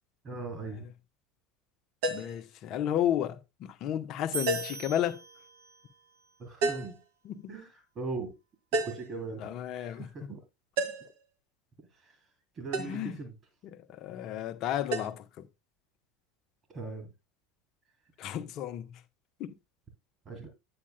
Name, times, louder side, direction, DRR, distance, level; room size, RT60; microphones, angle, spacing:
voice 1, 0.2-0.9 6.4-7.0 7.5-7.7 8.0-8.3 8.7-9.4 9.8-10.4 12.0-12.2 12.5-13.3 16.7-17.1 20.3-20.5, right 3 dB, 35° right, 3.6 m, -39 dB
sound 1, 2.0-2.4 4.5-4.9 6.6-7.0 8.7-9.1 10.8-11.2 12.7-13.0 14.9-15.1, right 2 dB, 60° right, 2.0 m, -31 dB
voice 2, 2.1-5.2 7.2-7.6 9.4-10.1 12.8-13.2 13.7-15.5 18.2-19.0 19.4-19.5, left 11 dB, 45° left, 1.1 m, -33 dB
sound 2, 4.3-6.0, right 4 dB, 75° right, 2.2 m, -40 dB
9.9 x 8.8 x 2.2 m
figure-of-eight pair, 75°, 0 cm